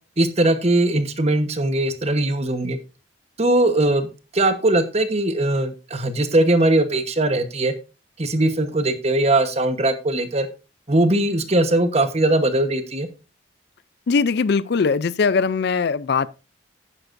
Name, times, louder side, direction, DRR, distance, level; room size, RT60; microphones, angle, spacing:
voice 1, 0.2-2.8 3.4-4.1 4.3-7.7 8.2-10.5 10.9-13.1, right 2 dB, 35° right, 1.1 m, -20 dB
voice 2, 14.1-16.3, left 5 dB, 55° left, 0.4 m, -20 dB
11.0 x 9.8 x 2.6 m
head